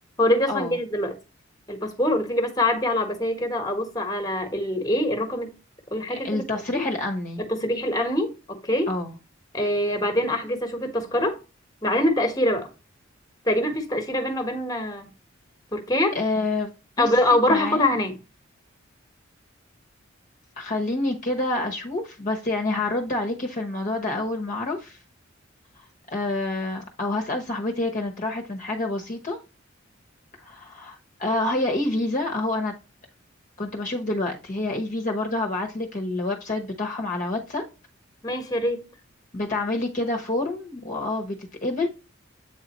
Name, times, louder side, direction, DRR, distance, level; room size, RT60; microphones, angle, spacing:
voice 1, 0.2-1.2 1.7-5.5 5.9-6.4 6.7-6.8 7.4-8.9 9.5-11.4 11.8-12.7 13.4-15.1 15.7-16.2 17.0-18.2 38.2-38.9, left 1 dB, 20° left, 1.3 m, -24 dB
voice 2, 6.1-7.4 8.9-9.2 16.1-16.7 17.0-17.1 17.5-17.8 20.6-25.0 26.1-29.4 30.4-32.7 33.6-37.6 39.3-41.9, left 2 dB, 40° left, 1.0 m, -27 dB
8.2 x 4.0 x 3.0 m
head